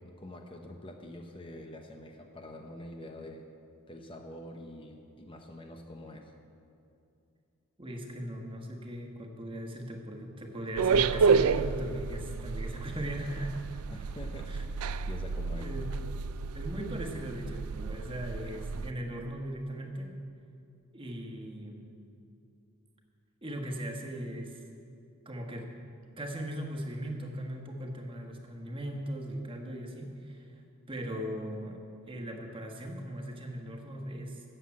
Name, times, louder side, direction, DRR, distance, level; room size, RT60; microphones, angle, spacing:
voice 1, 0.0-3.5 3.9-6.3 13.9-14.7 15.1-15.7, left 1 dB, 25° left, 3 dB, 0.8 m, -45 dB
voice 2, 7.8-13.5 14.5-14.6 15.5-15.9 16.5-20.1 20.9-21.9 23.4-24.6 25.2-25.8 26.2-30.6 30.9-31.8 32.1-34.4, equal, 25° right, 2 dB, 1.4 m, -38 dB
sound 1, 10.8-18.9, right 5 dB, 85° right, 0.4 m, -30 dB
13.0 x 7.8 x 8.5 m, 2.6 s
head